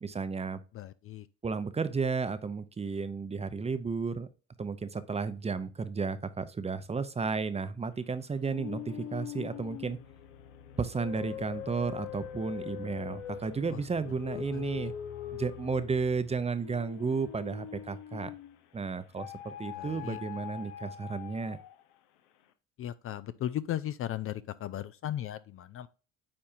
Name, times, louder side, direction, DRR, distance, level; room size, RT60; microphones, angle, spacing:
voice 1, 0.0-0.6 1.4-4.3 4.6-10.0 10.8-14.9 15.3-18.3 18.7-21.6, right 5 dB, 20° right, 0.6 m, -33 dB
voice 2, 0.7-1.3 13.7-13.8 14.3-14.9 19.7-20.2 22.8-25.9, left 12 dB, 45° left, 0.4 m, -37 dB
sound 1, 8.4-18.6 19.2-21.9, left 11 dB, 80° left, 0.8 m, -42 dB
8.7 x 4.3 x 2.7 m
supercardioid pair, 80°, 32 cm